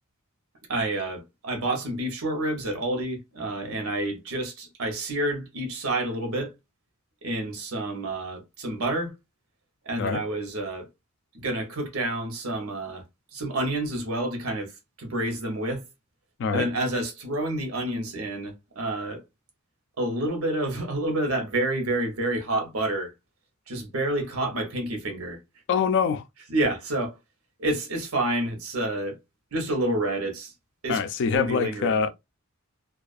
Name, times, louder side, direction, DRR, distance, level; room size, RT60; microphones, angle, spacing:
voice 1, 0.7-6.5 7.2-9.1 9.9-10.9 11.3-13.0 13.3-14.7 15.0-15.8 16.5-19.2 20.0-23.1 23.7-25.4 26.5-27.2 27.6-29.2 29.5-30.5 30.8-31.0 31.3-32.0, right 1 dB, 85° right, 0.9 m, -29 dB
voice 2, 25.7-26.2 30.9-32.1, left 6 dB, 60° left, 0.4 m, -24 dB
2.3 x 2.3 x 2.4 m
head